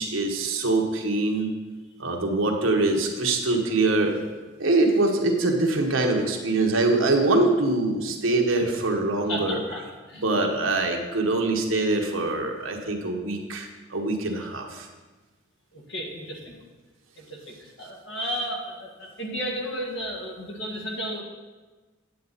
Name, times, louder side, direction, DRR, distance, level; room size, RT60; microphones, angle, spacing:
voice 1, 0.0-1.5 2.0-4.2 4.6-9.6 10.1-14.9, right 2 dB, 80° right, 2 dB, 1.3 m, -24 dB
voice 2, 9.3-9.8 10.1-10.5 15.9-16.6 17.3-21.2, equal, 60° left, 0 dB, 1.8 m, -33 dB
9.3 x 8.0 x 4.1 m, 1.2 s
head